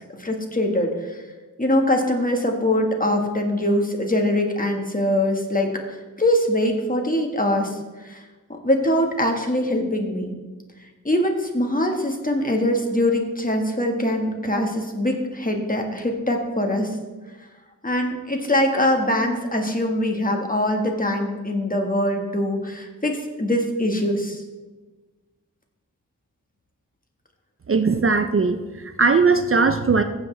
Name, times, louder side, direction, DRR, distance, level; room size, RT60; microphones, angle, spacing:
voice 1, 0.1-1.2 1.6-8.2 8.5-10.4 11.0-16.9 17.8-24.4, left 1 dB, 25° left, 3 dB, 1.5 m, -23 dB
voice 2, 27.7-30.0, right 4 dB, 40° right, 8 dB, 0.5 m, -19 dB
15.5 x 7.1 x 3.3 m, 1.2 s
wide cardioid pair, 55°, 34 cm